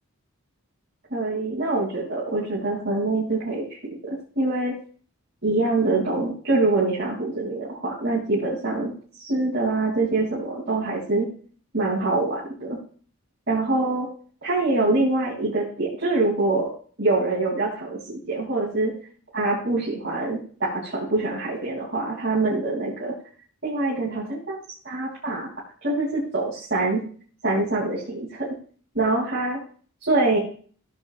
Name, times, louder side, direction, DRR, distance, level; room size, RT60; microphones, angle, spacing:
voice 1, 1.1-4.7 5.4-8.9 9.2-11.3 11.7-12.8 13.5-14.1 14.4-16.7 17.0-18.9 19.3-23.1 23.6-24.6 24.8-25.5 25.8-27.0 27.4-28.5 28.9-29.6 30.0-30.4, right 2 dB, 50° right, -7 dB, 2.9 m, -24 dB
15.0 x 7.7 x 2.5 m, 0.43 s
head